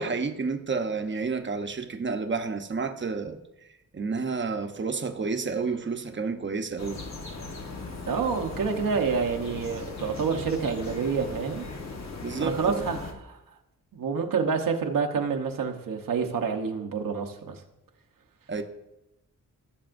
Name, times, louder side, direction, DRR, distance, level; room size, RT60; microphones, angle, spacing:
voice 1, 0.0-3.4 3.9-7.0 12.2-12.9 18.5-18.6, right 4 dB, 35° right, 0.9 m, -30 dB
sound 1, 6.8-13.1, left 3 dB, 55° left, 1.3 m, -38 dB
voice 2, 8.1-11.7 12.4-13.4 13.9-17.6, right 5 dB, 80° right, 1.0 m, -28 dB
17.5 x 6.9 x 2.6 m
cardioid pair, 90°, 33 cm